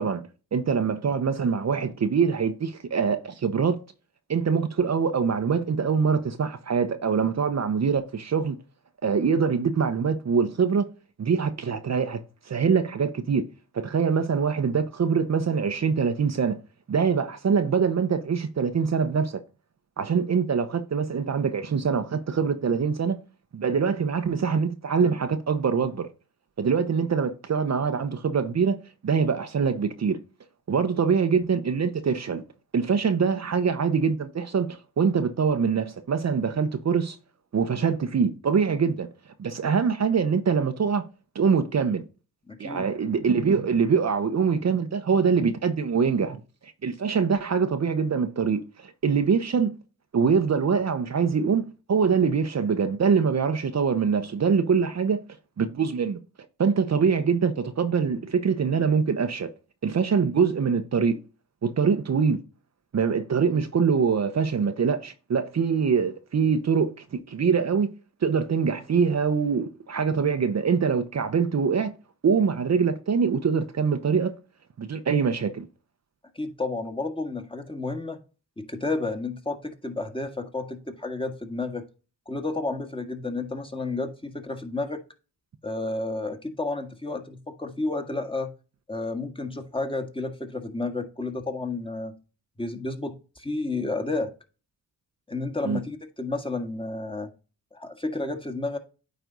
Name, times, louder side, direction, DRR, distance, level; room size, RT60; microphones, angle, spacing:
voice 1, 0.0-3.8 4.3-8.6 9.0-10.9 11.2-12.2 12.4-13.4 13.7-16.6 16.9-19.4 20.0-23.2 23.5-26.1 26.6-28.8 29.0-30.2 30.7-32.4 32.7-37.2 37.5-39.1 39.4-41.0 41.3-42.0 42.6-46.4 46.6-49.8 50.1-55.2 55.6-56.2 56.6-59.5 59.8-61.2 61.6-62.4 62.9-67.9 68.2-71.9 72.2-74.3 74.8-75.7 95.6-95.8, right 6 dB, 45° right, 0.9 m, -24 dB
voice 2, 42.5-42.9 76.3-78.2 78.6-81.9 82.2-85.0 85.6-88.5 88.9-92.1 92.6-94.3 95.3-97.3 97.7-98.8, left 2 dB, 15° left, 1.6 m, -31 dB
9.3 x 3.4 x 4.0 m
supercardioid pair, 50°, 39 cm